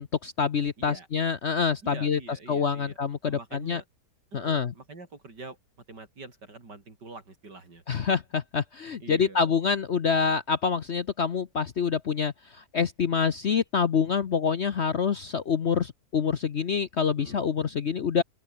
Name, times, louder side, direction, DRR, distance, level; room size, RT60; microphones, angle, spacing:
voice 1, 0.0-3.8 4.3-4.7 7.9-18.2, left 6 dB, 50° left, 1.0 m, -26 dB
voice 2, 1.8-3.0 3.2-3.8 4.3-5.6 5.9-7.8 9.0-9.4 17.2-17.5, right 3 dB, 80° right, 5.3 m, -45 dB
open air
omnidirectional pair, 1.8 m